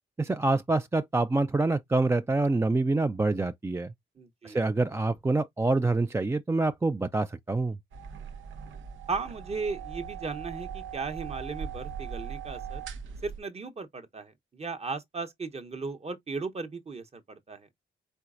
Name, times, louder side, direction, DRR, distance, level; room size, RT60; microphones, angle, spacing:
voice 1, 0.2-3.9 4.4-7.8, right 2 dB, 15° right, 0.3 m, -26 dB
voice 2, 4.2-4.6 9.1-12.8 13.2-17.7, right 4 dB, 35° right, 0.9 m, -36 dB
sound 1, 7.9-13.4, right 7 dB, 90° right, 0.7 m, -39 dB
4.4 x 3.9 x 2.5 m
cardioid pair, 90°, 20 cm